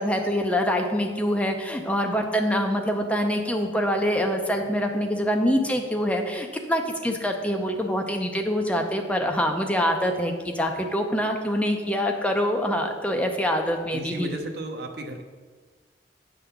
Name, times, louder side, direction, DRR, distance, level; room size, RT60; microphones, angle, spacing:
voice 1, 0.0-14.4, equal, 5° left, 3 dB, 0.6 m, -25 dB
voice 2, 13.9-15.2, right 1 dB, 60° right, 4 dB, 0.8 m, -34 dB
8.9 x 3.7 x 6.9 m, 1.5 s
head